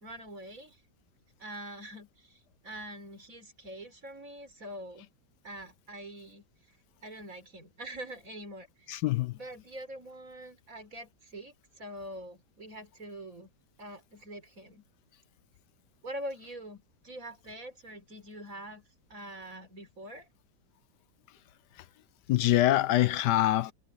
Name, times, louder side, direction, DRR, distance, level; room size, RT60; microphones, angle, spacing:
voice 1, 0.0-0.8 1.4-2.1 2.6-5.1 5.4-6.4 7.0-8.7 9.3-13.5 13.8-14.8 16.0-18.8 19.1-20.3, right 1 dB, 50° right, 4.4 m, -44 dB
voice 2, 8.9-9.3 22.3-23.7, left 14 dB, 75° left, 1.2 m, -24 dB
omnidirectional pair, 1.9 m